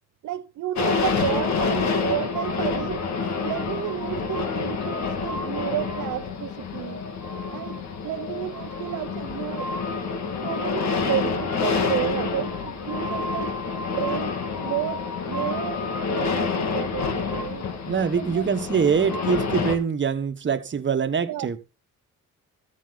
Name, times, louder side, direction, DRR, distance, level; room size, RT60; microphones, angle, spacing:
voice 1, 0.2-3.0 3.4-7.0 7.5-9.7 10.4-13.5 13.9-17.6 18.2-18.5 21.3-21.6, right 13 dB, 80° right, 0.9 m, -31 dB
sound 1, 0.8-19.8, left 4 dB, 65° left, 2.3 m, -28 dB
voice 2, 17.8-21.6, right 6 dB, 40° right, 1.4 m, -24 dB
14.0 x 9.3 x 4.0 m
cardioid pair, 90°, 30 cm